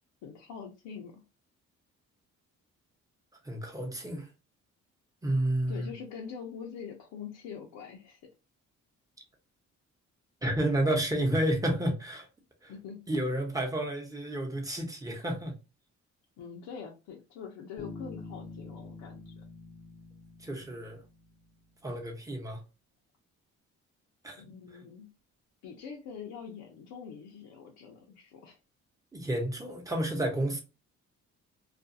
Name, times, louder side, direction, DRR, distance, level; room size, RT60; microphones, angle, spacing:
voice 1, 0.2-1.2 5.7-8.3 12.7-13.0 13.5-13.6 16.4-19.4 24.4-25.1 25.6-28.6, left 6 dB, 80° left, 0.6 m, -44 dB
voice 2, 3.4-4.3 5.2-5.9 10.4-12.3 12.6-12.7 13.1-15.5 20.4-21.0 21.8-22.6 24.2-24.4 29.1-30.6, right 1 dB, 10° right, 0.8 m, -30 dB
Bass guitar, 17.8-21.5, left 3 dB, 25° left, 0.4 m, -46 dB
2.4 x 2.2 x 2.6 m
cardioid pair, 90°, 30 cm